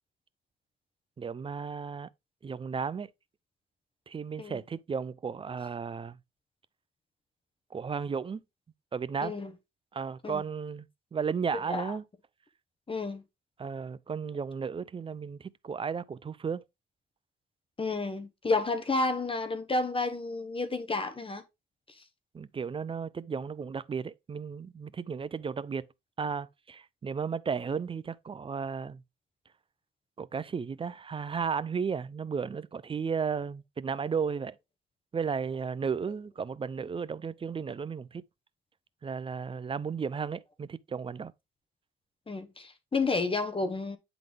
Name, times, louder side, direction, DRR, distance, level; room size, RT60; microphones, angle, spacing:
voice 1, 1.2-2.1 2.4-3.1 4.1-6.2 7.7-8.4 8.9-9.4 9.9-10.9 11.1-12.0 13.6-16.6 22.3-25.9 26.2-29.0 30.2-34.6 35.1-38.2 39.0-41.3, right 6 dB, 25° right, 0.5 m, -34 dB
voice 2, 9.2-9.5 10.2-10.4 11.7-12.0 12.9-13.2 17.8-21.4 22.0-22.1 42.3-44.0, left 3 dB, 25° left, 1.1 m, -31 dB
9.0 x 4.0 x 3.4 m
cardioid pair, 90°, 20 cm